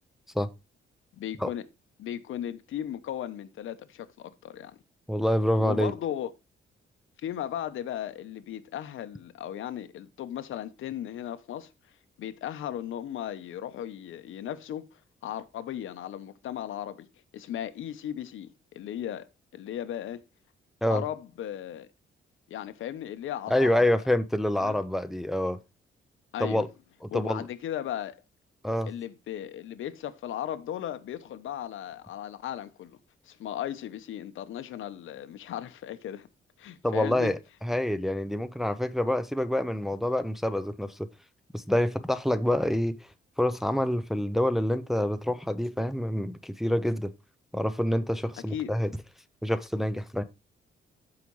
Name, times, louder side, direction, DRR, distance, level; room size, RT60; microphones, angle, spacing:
voice 1, 1.1-1.6 2.0-4.8 5.6-6.3 7.2-11.7 12.2-17.1 17.3-20.2 20.9-21.9 22.5-23.9 24.6-24.8 26.3-26.7 27.1-28.2 28.8-33.0 33.2-36.3 36.6-37.3 48.5-48.7, left 11 dB, 90° left, 0.9 m, -36 dB
voice 2, 5.1-5.9 20.8-21.0 23.5-25.6 26.4-26.7 27.1-27.5 28.6-28.9 36.8-41.1 41.5-43.1 43.4-47.1 47.5-48.9 49.4-50.2, left 1 dB, ahead, 0.4 m, -27 dB
14.0 x 4.9 x 3.1 m
wide cardioid pair, 165°, 20 cm